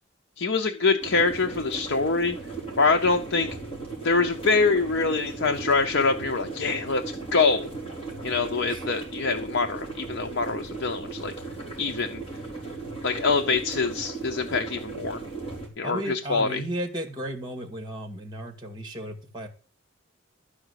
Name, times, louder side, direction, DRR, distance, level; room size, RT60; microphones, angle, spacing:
voice 1, 0.4-2.4 2.8-3.5 4.0-7.0 7.3-7.7 8.2-11.3 11.8-12.2 13.0-15.2 15.8-16.6, left 4 dB, 65° left, 4 dB, 0.8 m, -24 dB
sound 1, 1.0-15.7, right 3 dB, 25° left, 4.3 m, -37 dB
voice 2, 15.8-19.5, right 1 dB, 20° right, 5 dB, 2.3 m, -34 dB
13.0 x 4.9 x 8.2 m, 0.37 s
head